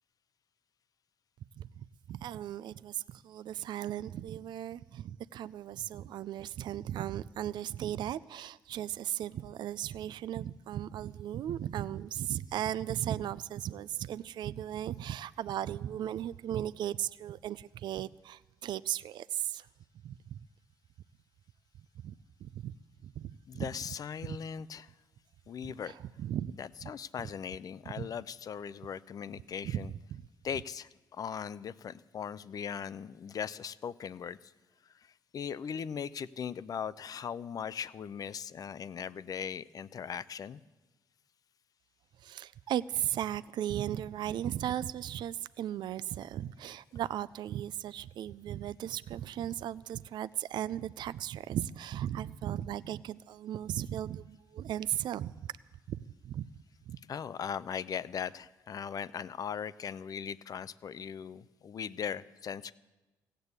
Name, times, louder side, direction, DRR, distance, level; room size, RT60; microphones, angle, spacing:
voice 1, 2.1-19.7 20.0-20.4 22.0-22.1 22.4-22.7 23.0-23.7 24.2-24.4 25.9-26.5 26.8-26.9 28.0-28.1 29.6-30.2 42.2-55.3 55.9-56.0 56.2-56.4 56.9-57.0, right 11 dB, 70° right, 0.4 m, -36 dB
voice 2, 23.5-24.9 25.5-25.9 26.6-29.9 30.4-34.4 35.3-40.6 57.1-62.7, left 7 dB, 50° left, 0.5 m, -39 dB
16.0 x 9.0 x 8.1 m
cardioid pair, 80°, 8 cm